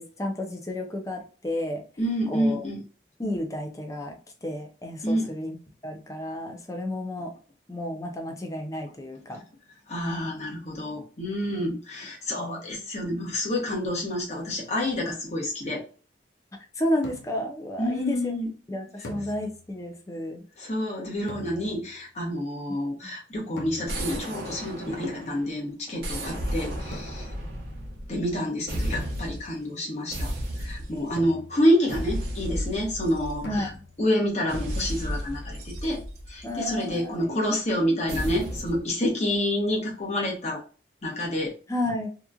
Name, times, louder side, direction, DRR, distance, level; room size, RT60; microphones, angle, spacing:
voice 1, 0.0-1.8 2.3-2.6 3.2-5.6 5.8-7.3 7.7-9.4 11.6-11.8 12.4-12.6 16.8-18.3 18.7-20.4 23.0-23.2 32.5-32.6 33.5-33.8 36.4-37.4 37.8-38.2 41.7-42.1, left 1 dB, 20° left, 3 dB, 0.5 m, -32 dB
voice 2, 2.0-2.8 5.0-5.3 9.9-15.9 17.8-18.5 20.6-27.3 28.1-30.3 30.6-33.7 34.0-36.0 36.3-40.6 41.0-41.5, equal, 40° left, -2 dB, 1.0 m, -28 dB
sound 1, 17.0-17.6 19.0-19.9 21.3-22.1 23.6-24.3 26.9-27.5 28.9-29.8 31.2-32.0 33.4-34.1, left 2 dB, 75° left, 0.5 m, -42 dB
sound 2, 23.9-25.5 26.0-28.4 28.7-29.5 30.1-31.1 31.9-33.8 34.5-36.9 38.1-38.8, equal, 55° right, 0.8 m, -33 dB
2.9 x 2.4 x 2.2 m, 0.38 s
head